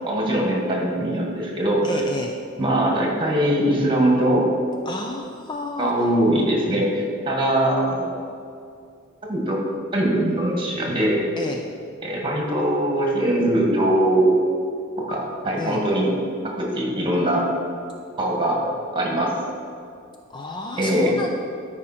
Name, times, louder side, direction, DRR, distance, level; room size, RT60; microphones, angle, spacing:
voice 1, 0.1-2.0 2.6-4.5 5.8-8.1 9.3-9.6 9.9-11.2 12.0-14.4 15.1-16.1 16.6-17.5 18.2-19.4 20.8-21.1, right 1 dB, 25° right, -2 dB, 1.9 m, -21 dB
voice 2, 1.8-2.4 4.9-6.1 11.4-11.6 15.6-15.8 20.3-21.3, left 2 dB, 20° left, 2 dB, 0.5 m, -30 dB
13.0 x 5.0 x 4.3 m, 2.4 s
head